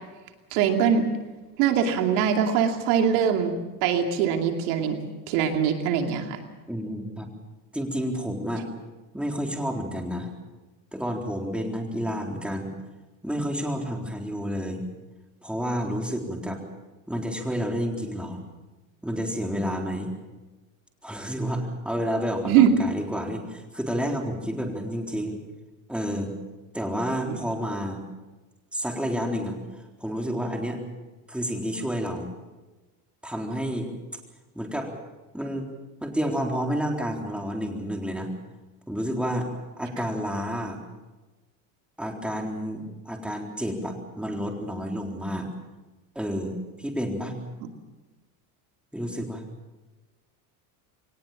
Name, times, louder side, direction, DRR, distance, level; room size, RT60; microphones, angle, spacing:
voice 1, 0.5-1.1 1.6-3.5 3.8-5.0 5.3-6.4 22.5-22.7 27.3-27.4, right 8 dB, 80° right, 4 dB, 2.7 m, -22 dB
voice 2, 6.7-7.3 7.7-8.7 9.1-10.3 10.9-12.7 13.2-14.8 15.4-16.6 17.1-18.4 19.0-20.1 21.0-25.4 25.9-26.3 26.7-28.0 28.7-30.8 31.3-32.3 33.2-33.9 34.5-34.9 35.3-35.7 36.0-38.3 38.9-39.5 39.8-40.8 42.0-45.5 46.2-46.5 46.8-47.4 48.9-49.4, equal, ahead, 2 dB, 3.9 m, -30 dB
23.0 x 19.0 x 7.3 m, 1.2 s
supercardioid pair, 110°, 45 cm